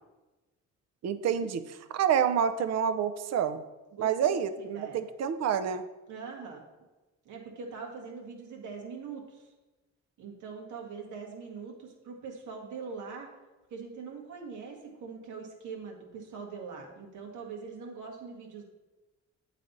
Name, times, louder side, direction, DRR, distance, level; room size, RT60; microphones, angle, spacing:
voice 1, 1.0-3.6 4.0-5.8, right 8 dB, 60° right, 11 dB, 0.5 m, -28 dB
voice 2, 3.9-5.0 6.1-6.6 7.2-9.5 10.2-13.3 13.7-18.6, right 5 dB, 75° right, 1 dB, 1.4 m, -42 dB
8.5 x 3.3 x 3.9 m, 1.1 s
cardioid pair, 90°, 30 cm